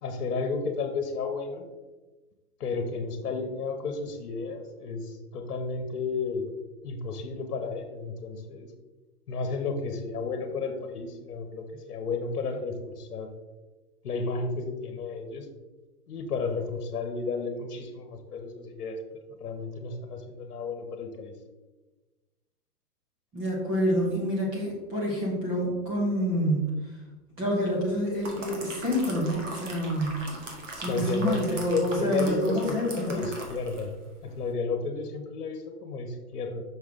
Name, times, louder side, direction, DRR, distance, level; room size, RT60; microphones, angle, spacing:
voice 1, 0.0-1.7 2.6-6.4 6.8-8.7 9.3-13.3 14.0-15.5 16.1-19.0 19.3-21.4 30.9-33.9 34.2-36.6, left 4 dB, 70° left, 6 dB, 1.2 m, -32 dB
voice 2, 23.3-26.9 27.4-33.2, equal, 10° right, -3 dB, 0.8 m, -28 dB
Pouring a cup of coffee, 27.9-33.9 34.3-34.4, right 2 dB, 50° right, 1.6 m, -41 dB
6.1 x 5.5 x 3.6 m, 1.2 s
hypercardioid pair, 165°, 46 cm